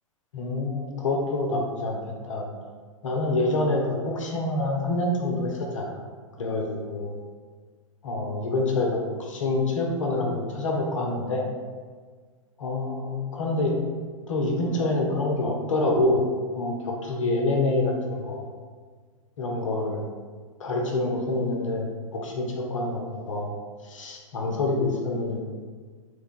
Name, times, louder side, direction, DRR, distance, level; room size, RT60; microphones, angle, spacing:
voice 1, 0.3-2.0 2.2-2.5 3.0-6.0 6.4-7.2 8.0-11.4 12.6-13.7 14.3-18.4 19.4-20.0 20.6-21.8 22.1-23.0 23.3-23.5 23.8-25.5, left 2 dB, 65° left, 0 dB, 0.6 m, -26 dB
3.1 x 2.2 x 3.6 m, 1.5 s
figure-of-eight pair, 100°, 17 cm